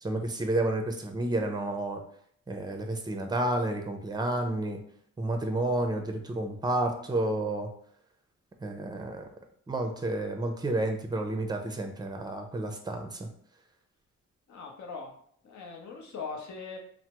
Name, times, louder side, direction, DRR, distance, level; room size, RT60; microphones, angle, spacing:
voice 1, 0.0-2.0 2.5-4.8 5.2-7.7 8.6-9.2 9.7-13.3, right 1 dB, 15° right, 4 dB, 0.5 m, -30 dB
voice 2, 14.5-15.1 15.4-16.8, left 4 dB, 65° left, 1 dB, 0.8 m, -40 dB
3.2 x 2.1 x 2.9 m, 0.63 s
cardioid pair, 80°, 31 cm